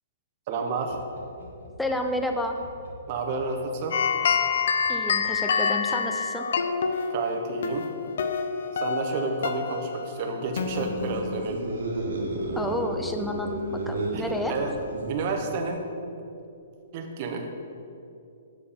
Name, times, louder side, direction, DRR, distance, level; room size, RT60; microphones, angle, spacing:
voice 1, 0.5-1.0 3.1-4.0 7.1-7.9 8.7-11.6 14.1-14.7 15.1-15.9 16.9-17.5, right 3 dB, 35° right, 4 dB, 0.8 m, -30 dB
sound 1, 0.8-6.0 7.8-8.1 8.5-8.6, left 1 dB, 80° left, 1.6 m, -50 dB
voice 2, 1.8-2.6 4.9-6.5 12.5-14.5, left 1 dB, 5° left, 4 dB, 0.4 m, -30 dB
sound 2, 3.9-11.4, left 5 dB, 65° left, 0.5 m, -28 dB
sound 3, 10.5-15.6, right 2 dB, 75° right, 1.2 m, -32 dB
7.2 x 4.5 x 5.1 m, 2.6 s
hypercardioid pair, 160°, 0 cm